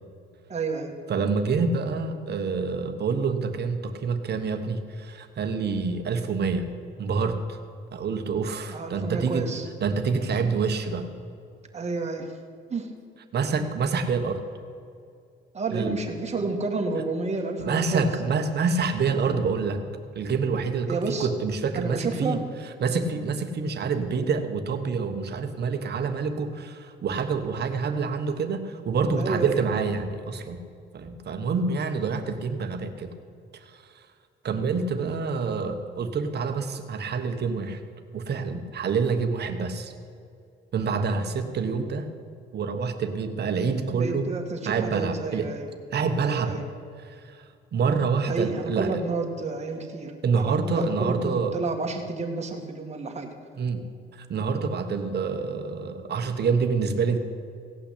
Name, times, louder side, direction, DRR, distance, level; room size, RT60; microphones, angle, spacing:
voice 1, 0.5-0.9 8.7-9.7 11.7-12.3 12.7-12.9 15.5-18.1 19.1-19.5 20.9-21.3 21.8-22.4 29.2-29.6 43.9-45.7 46.2-46.7 48.3-53.3, right 3 dB, 35° right, 1 dB, 2.0 m, -30 dB
voice 2, 1.1-6.7 7.0-7.6 7.9-9.5 9.8-11.1 13.3-14.4 15.7-16.0 17.6-19.8 20.1-22.4 22.8-30.6 30.9-33.1 34.4-37.8 38.1-39.9 40.7-42.1 42.5-44.3 44.6-45.5 45.9-46.6 47.1-47.4 47.7-49.0 50.2-51.5 53.6-53.8 54.1-57.2, right 5 dB, 55° right, 7 dB, 1.3 m, -27 dB
17.0 x 5.8 x 8.5 m, 2.4 s
cardioid pair, 90°, 20 cm